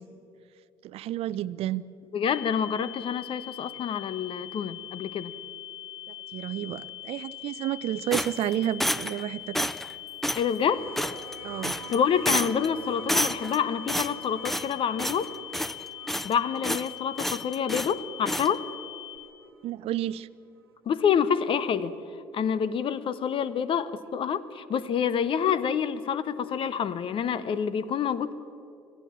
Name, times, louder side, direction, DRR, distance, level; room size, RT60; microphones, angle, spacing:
voice 1, 0.8-1.8 6.3-9.7 11.4-11.8 19.6-20.3, right 12 dB, 55° right, 19 dB, 0.6 m, -31 dB
voice 2, 2.1-5.3 10.3-10.9 11.7-15.3 16.2-18.6 20.9-21.9 22.3-28.3, left 7 dB, 45° left, 16 dB, 1.0 m, -27 dB
sound 1, 2.2-19.2, left 14 dB, 80° left, 1.2 m, -42 dB
sound 2, 8.1-9.2 9.5-9.9 10.2-10.5 11.0-11.4 11.6-12.0 12.3-12.7 13.1-13.6 13.9-14.7 15.0-15.3 15.5-16.3 16.6-16.9 17.2-17.9 18.3-18.5, equal, ahead, 0.5 m, -29 dB
sound 3, 10.3-19.6 20.7-20.8, right 6 dB, 90° right, 1.1 m, -48 dB
26.0 x 16.0 x 7.4 m, 2.7 s
figure-of-eight pair, 55°, 12 cm